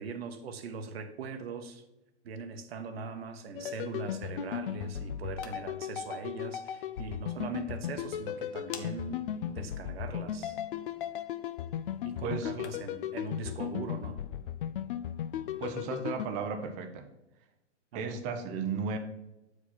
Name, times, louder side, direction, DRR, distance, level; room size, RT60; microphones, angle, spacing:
voice 1, 0.0-1.8 2.2-10.6 12.0-14.2 17.9-18.2, right 4 dB, 55° right, 7 dB, 1.1 m, -41 dB
sound 1, 3.6-16.3, left 10 dB, 50° left, 0.4 m, -36 dB
sound 2, 5.1-13.1, left 6 dB, 70° left, 1.2 m, -55 dB
voice 2, 12.2-12.5 15.6-17.1 17.9-19.0, right 5 dB, 20° right, 6 dB, 0.7 m, -34 dB
7.7 x 4.9 x 4.3 m, 0.94 s
hypercardioid pair, 140°, 36 cm